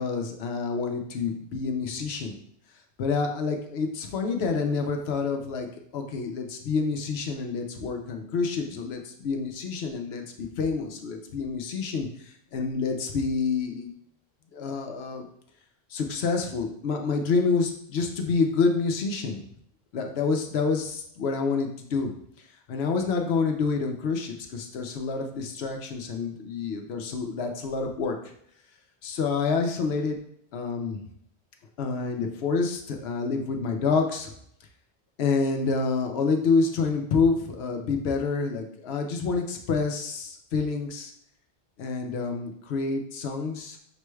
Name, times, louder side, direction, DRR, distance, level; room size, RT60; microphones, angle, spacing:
voice 1, 0.0-2.4 3.0-5.7 5.9-13.9 14.5-15.3 15.9-19.4 19.9-22.1 22.7-28.2 29.0-30.2 30.5-31.0 31.8-34.3 35.2-41.1 41.8-43.8, left 4 dB, 75° left, 4 dB, 0.9 m, -28 dB
5.9 x 3.1 x 2.3 m, 0.67 s
omnidirectional pair, 1.1 m